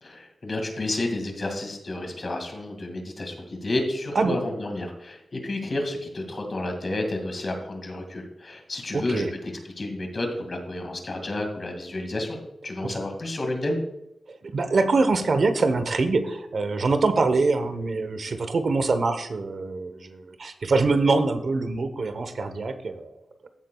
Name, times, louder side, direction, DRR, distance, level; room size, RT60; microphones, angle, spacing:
voice 1, 0.0-9.3 9.8-12.4 12.6-13.8, left 2 dB, 35° left, 3 dB, 2.1 m, -30 dB
voice 2, 8.9-9.3 14.5-23.1, right 3 dB, 50° right, 9 dB, 0.9 m, -24 dB
15.0 x 7.4 x 2.3 m, 0.85 s
wide cardioid pair, 165°, 0 cm